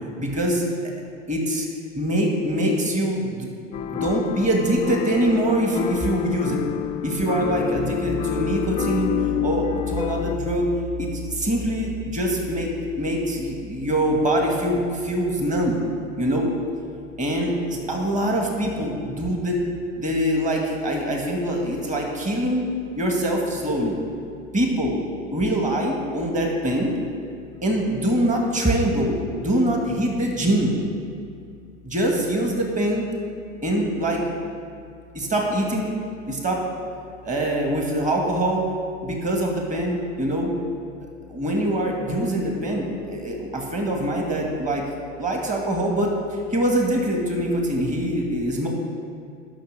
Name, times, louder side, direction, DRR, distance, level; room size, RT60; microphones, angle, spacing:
voice 1, 0.2-0.6 1.3-1.7 2.0-3.5 3.9-6.6 7.0-10.7 11.0-12.7 13.0-15.8 16.2-16.5 17.2-19.6 20.0-22.7 23.0-24.0 24.5-25.0 25.3-26.9 27.6-30.7 31.8-33.0 33.6-34.2 35.1-35.9 36.3-36.6 37.2-38.6 39.0-40.5 41.3-44.8 45.2-48.7, right 1 dB, 20° right, 0 dB, 2.1 m, -24 dB
sound 1, 3.7-10.4, left 9 dB, 15° left, 0.4 m, -28 dB
11.5 x 6.3 x 6.7 m, 2.4 s
hypercardioid pair, 100°, 39 cm